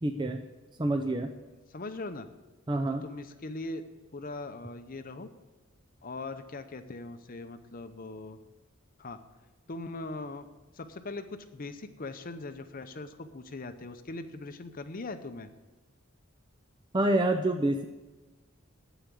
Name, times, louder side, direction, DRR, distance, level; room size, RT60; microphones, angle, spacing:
voice 1, 0.0-0.4 0.8-1.3 2.7-3.0 16.9-17.8, right 1 dB, 20° right, 5 dB, 0.5 m, -27 dB
voice 2, 1.7-2.3 3.0-3.8 4.1-5.3 6.0-8.4 9.0-9.2 9.7-10.5 10.7-15.5, left 2 dB, 40° left, 9 dB, 0.6 m, -40 dB
9.6 x 8.2 x 8.2 m, 1.2 s
head